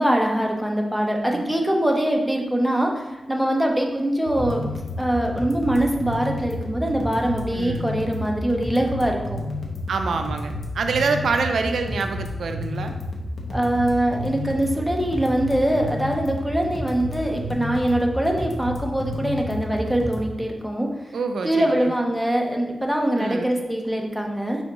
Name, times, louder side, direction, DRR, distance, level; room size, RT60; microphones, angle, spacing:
voice 1, 0.0-4.7 5.0-9.4 13.5-20.9 21.4-24.6, right 1 dB, ahead, 1 dB, 0.6 m, -23 dB
sound 1, 4.3-20.3, left 1 dB, 70° left, 0.7 m, -31 dB
voice 2, 7.5-7.9 9.9-12.9 21.1-21.9 23.1-23.5, right 4 dB, 85° right, 6 dB, 0.3 m, -26 dB
5.3 x 3.3 x 2.9 m, 1.0 s
wide cardioid pair, 110°, 0 cm